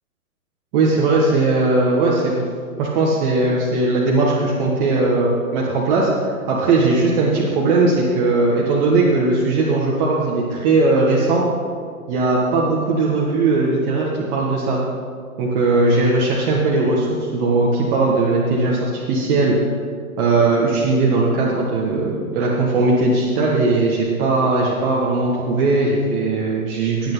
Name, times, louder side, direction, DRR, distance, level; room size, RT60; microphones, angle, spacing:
voice 1, 0.7-2.5 2.8-6.1 6.5-11.5 12.1-14.8 15.4-19.6 20.2-27.1, right 3 dB, 40° right, -4 dB, 1.9 m, -18 dB
19.5 x 8.5 x 4.0 m, 2.1 s
hypercardioid pair, 130°, 43 cm